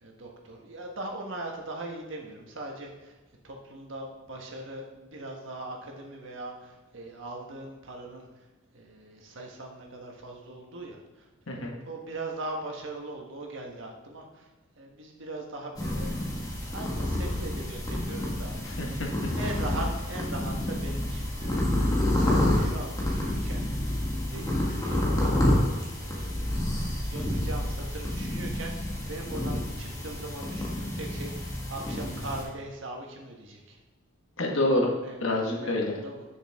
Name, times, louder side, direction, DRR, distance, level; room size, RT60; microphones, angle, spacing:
voice 1, 0.0-3.2 3.4-8.3 8.7-14.5 14.8-16.1 16.7-18.6 19.3-33.8 35.0-35.2 35.5-36.2, right 2 dB, 65° right, 0 dB, 1.5 m, -40 dB
sound 1, 15.8-32.4, left 1 dB, 20° left, 1.6 m, -29 dB
voice 2, 18.6-19.3 34.4-34.9 35.2-35.9, left 1 dB, 70° left, -1 dB, 1.6 m, -27 dB
9.2 x 6.5 x 3.6 m, 1.1 s
head